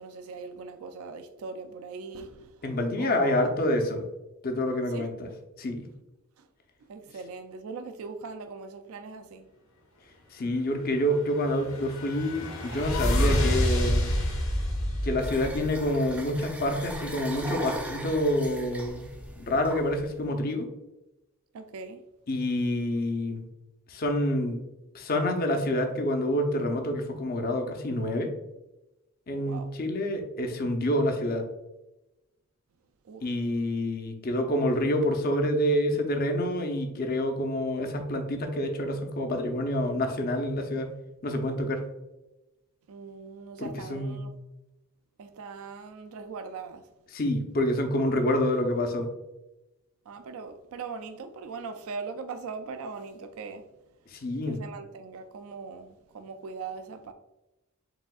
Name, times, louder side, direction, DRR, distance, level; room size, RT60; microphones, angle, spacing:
voice 1, 0.0-2.6 3.0-3.6 4.9-5.0 6.4-6.5 6.8-9.5 21.5-22.0 29.4-29.7 33.0-33.2 42.9-44.3 45.2-46.9 50.1-53.7 54.5-57.1, right 4 dB, 75° right, 0.4 m, -40 dB
voice 2, 2.6-4.0 4.4-5.3 5.6-5.9 10.3-14.2 15.0-19.1 19.4-20.7 22.3-23.4 23.9-24.6 24.9-28.3 29.3-31.5 33.2-40.9 41.2-41.9 43.6-44.3 47.1-49.1 54.1-54.6, left 1 dB, 40° left, 0.6 m, -27 dB
sound 1, 11.2-16.2, equal, 70° left, 1.1 m, -28 dB
sound 2, 15.2-20.3, right 1 dB, 5° right, 0.4 m, -39 dB
4.8 x 3.5 x 2.3 m
head